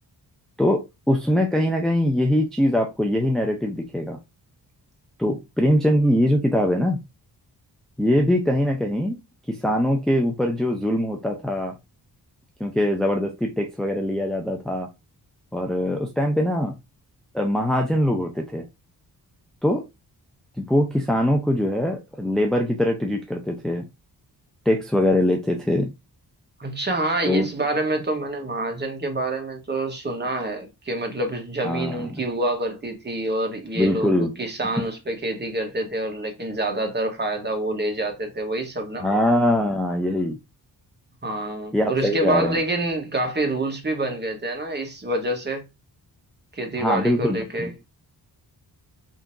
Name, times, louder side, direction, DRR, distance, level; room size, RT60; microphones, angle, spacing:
voice 1, 0.6-4.2 5.2-7.0 8.0-9.2 9.5-11.8 12.6-14.9 15.5-16.7 17.3-18.7 19.6-19.8 20.6-23.9 24.7-25.9 27.2-27.5 31.6-32.2 33.7-34.3 39.0-40.4 41.7-42.6 46.8-47.7, left 1 dB, ahead, 0.5 m, -22 dB
voice 2, 26.6-39.1 41.2-45.6 46.6-47.7, right 2 dB, 25° right, 1.2 m, -27 dB
3.7 x 2.8 x 2.6 m
cardioid pair, 85°, 40 cm